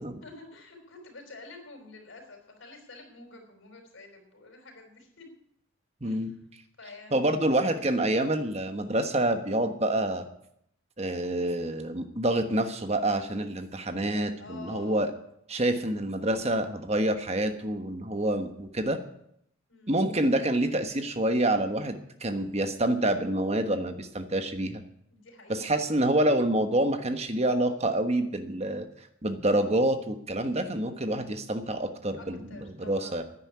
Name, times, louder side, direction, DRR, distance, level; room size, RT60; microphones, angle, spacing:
voice 1, 0.2-5.3 6.0-6.3 6.8-7.5 14.4-15.1 19.7-20.1 25.1-25.8 32.1-33.2, left 3 dB, 60° left, 2 dB, 4.6 m, -48 dB
voice 2, 6.0-6.3 7.1-10.3 11.0-15.1 15.5-19.0 19.9-24.8 25.5-28.9 29.2-33.2, right 1 dB, 30° right, 7 dB, 1.2 m, -27 dB
10.5 x 9.9 x 9.6 m, 0.74 s
head